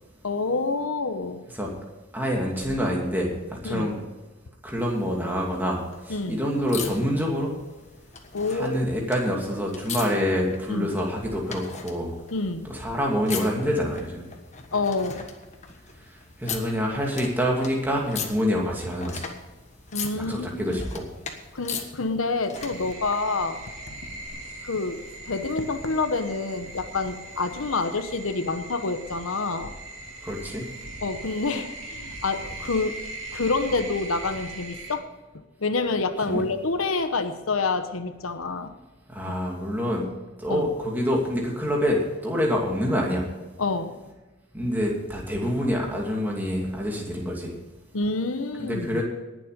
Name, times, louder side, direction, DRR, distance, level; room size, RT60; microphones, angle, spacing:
voice 1, 0.2-1.4 3.6-3.9 6.1-6.4 8.3-8.8 10.7-10.9 12.3-12.7 14.7-15.3 19.9-20.8 21.5-23.6 24.6-25.0 25.3-29.7 31.0-33.0 33.3-35.1 35.6-38.7 39.2-39.4 40.5-40.7 43.6-44.0 47.9-49.0, left 3 dB, 85° left, 9 dB, 1.0 m, -27 dB
voice 2, 2.1-4.0 4.6-7.5 8.5-12.1 12.7-14.3 16.4-19.2 20.2-21.1 30.2-30.6 36.3-36.4 39.1-40.1 40.4-43.2 44.5-47.5 48.6-49.0, equal, 10° right, -2 dB, 2.6 m, -26 dB
sound 1, 4.8-23.0 24.3-24.4, left 6 dB, 35° left, 1.4 m, -40 dB
sound 2, 22.5-35.0, right 2 dB, 80° right, 2.9 m, -40 dB
19.5 x 7.6 x 5.2 m, 1.1 s
head